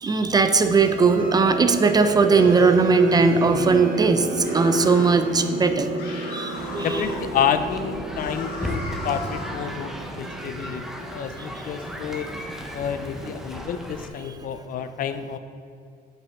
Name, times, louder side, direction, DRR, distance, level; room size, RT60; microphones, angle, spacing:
voice 1, 0.0-5.9 6.3-7.1, right 4 dB, 25° right, 8 dB, 0.4 m, -19 dB
sound 1, 0.8-13.3, right 2 dB, 55° right, 0.9 m, -31 dB
sound 2, 4.4-5.2 6.0-7.3 8.1-9.6, left 3 dB, 75° left, 1.4 m, -37 dB
sound 3, 6.5-14.1, equal, ahead, 0.8 m, -36 dB
voice 2, 6.8-12.3 12.7-15.4, left 8 dB, 55° left, 10 dB, 0.5 m, -29 dB
8.2 x 5.3 x 3.6 m, 2.4 s
cardioid pair, 110°, 17 cm